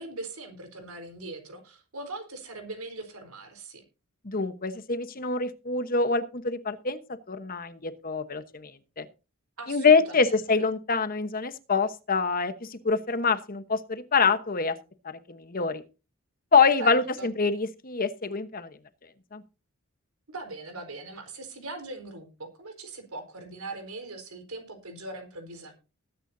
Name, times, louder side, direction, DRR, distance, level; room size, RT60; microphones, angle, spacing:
voice 1, 0.0-3.8 9.6-10.3 16.8-17.3 20.3-25.7, right 2 dB, 85° right, 6 dB, 4.4 m, -40 dB
voice 2, 4.2-7.0 7.3-8.7 9.0-9.1 9.7-14.8 15.0-15.8 16.5-18.8 19.3-19.4, left 4 dB, 40° left, 11 dB, 1.1 m, -25 dB
20.0 x 9.5 x 2.7 m, 0.32 s
head